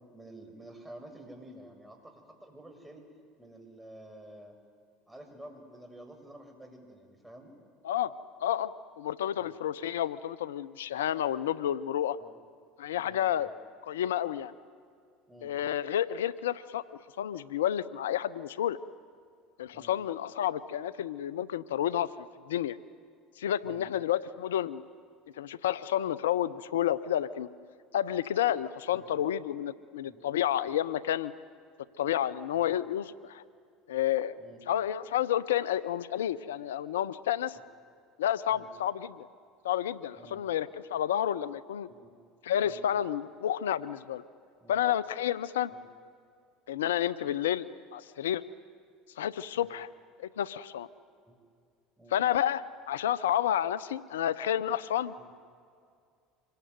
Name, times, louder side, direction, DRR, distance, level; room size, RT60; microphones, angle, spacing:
voice 1, 0.1-3.1 3.4-4.6 5.1-7.5 9.4-9.5 12.2-12.4 13.0-13.5 15.3-15.5 19.7-19.9 23.6-23.9 28.9-29.1 30.0-30.2 32.6-32.8 34.4-34.6 38.5-38.7 40.1-40.4 41.9-42.1 42.6-42.8 44.6-44.8 45.7-45.9 49.5-49.7 51.3-51.4 52.0-52.2 55.2-55.3, right 1 dB, 10° right, 3 dB, 6.1 m, -50 dB
voice 2, 8.4-12.2 12.8-13.5 13.8-14.5 15.4-16.8 17.2-18.8 19.6-22.1 22.5-22.8 23.4-24.8 25.3-27.5 27.9-31.3 32.0-33.4 33.9-34.4 34.7-37.6 38.2-39.3 39.6-41.9 42.4-44.2 44.7-45.7 46.7-47.7 47.9-48.4 49.2-49.9 50.2-50.9 52.1-55.1, left 11 dB, 85° left, 17 dB, 0.6 m, -30 dB
26.0 x 21.5 x 9.4 m, 2.3 s
hypercardioid pair, 80°, 0 cm